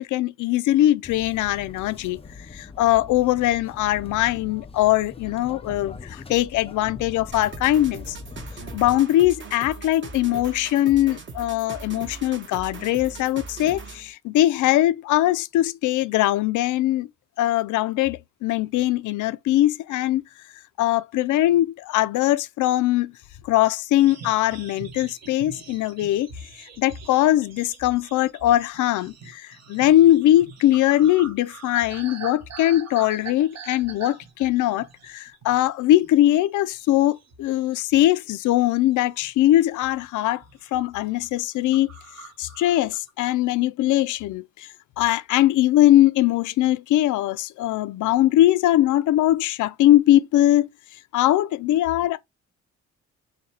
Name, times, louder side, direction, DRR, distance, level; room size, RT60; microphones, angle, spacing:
voice 1, 0.0-2.2 2.5-8.2 8.7-17.1 17.4-20.2 20.8-23.1 23.5-26.3 26.8-29.4 29.7-40.4 40.7-41.9 42.4-44.4 45.0-50.7 51.1-52.2, left 14 dB, 80° left, 0.5 m, -21 dB
sound 1, 1.0-9.0, left 4 dB, 20° left, 0.5 m, -41 dB
sound 2, 7.3-14.1, right 4 dB, 40° right, 1.2 m, -39 dB
sound 3, 24.0-35.7 36.0-36.3 36.7-38.2 38.5-39.3 39.8-40.1 40.3-40.7 41.0-41.1 41.4-41.5 41.7-43.1, right 5 dB, 60° right, 1.2 m, -43 dB
6.5 x 2.3 x 2.8 m
cardioid pair, 90°, 30 cm